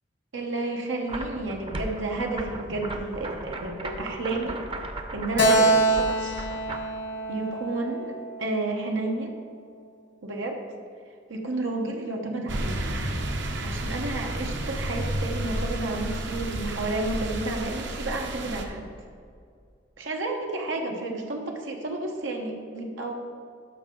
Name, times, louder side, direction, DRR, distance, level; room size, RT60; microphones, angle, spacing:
voice 1, 0.3-4.6 5.1-6.5 7.3-9.3 10.2-10.6 11.3-12.8 13.6-18.9 20.0-23.1, right 2 dB, 90° right, 1 dB, 1.1 m, -31 dB
sound 1, 1.1-6.8, right 2 dB, 30° right, 0.6 m, -37 dB
Keyboard (musical), 5.4-8.8, right 2 dB, 80° left, 1.4 m, -25 dB
sound 2, 12.5-18.6, right 1 dB, 65° right, 0.9 m, -31 dB
13.0 x 5.6 x 3.8 m, 2.3 s
head